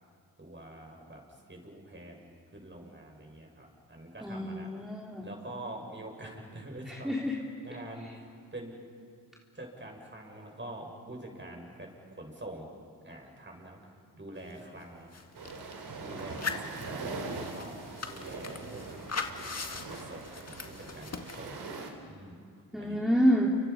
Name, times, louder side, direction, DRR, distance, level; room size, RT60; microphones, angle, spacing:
voice 1, 0.4-1.2 1.5-4.7 5.2-8.8 9.5-12.7 13.0-15.2 16.0-19.0 19.7-21.6 22.0-22.4 22.8-23.0, right 1 dB, 25° right, 0 dB, 7.7 m, -45 dB
voice 2, 4.2-5.3 6.9-7.4 22.7-23.5, equal, ahead, -3 dB, 3.4 m, -28 dB
sound 1, 14.5-14.6 14.8-15.7 16.2-21.4, left 4 dB, 40° left, 2.0 m, -40 dB
sound 2, 15.3-21.9, right 3 dB, 65° right, 3.8 m, -41 dB
30.0 x 25.0 x 5.7 m, 2.2 s
supercardioid pair, 45°, 41 cm